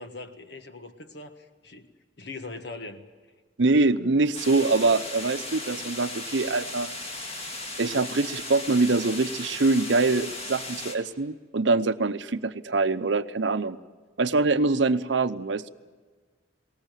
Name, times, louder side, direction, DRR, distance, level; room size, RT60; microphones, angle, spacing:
voice 1, 0.0-1.9 2.2-3.0, left 3 dB, 65° left, 7 dB, 1.5 m, -41 dB
voice 2, 3.6-6.9 7.8-13.8 14.2-15.7, right 3 dB, 75° right, 13 dB, 0.7 m, -24 dB
sound 1, 4.3-11.0, left 2 dB, 35° left, 2.3 m, -36 dB
20.5 x 18.5 x 9.1 m, 1.4 s
head